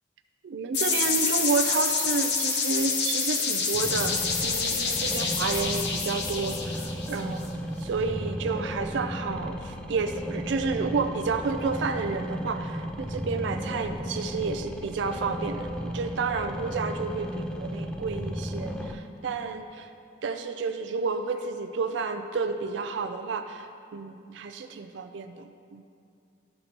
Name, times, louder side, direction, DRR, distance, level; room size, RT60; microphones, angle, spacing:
voice 1, 0.4-7.5 7.8-19.9 20.2-25.8, right 4 dB, 65° right, 7 dB, 0.4 m, -31 dB
sound 1, 0.7-7.5, left 5 dB, 55° left, 0.8 m, -27 dB
sound 2, 3.7-18.9, equal, 5° left, 0.3 m, -35 dB
12.0 x 6.5 x 2.9 m, 2.4 s
head